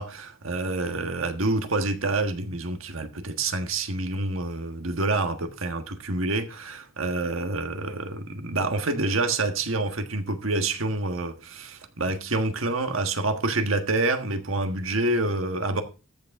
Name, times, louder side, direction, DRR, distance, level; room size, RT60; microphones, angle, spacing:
voice 1, 0.0-15.8, right 2 dB, 85° right, 1.5 m, -27 dB
14.0 x 6.8 x 3.6 m
head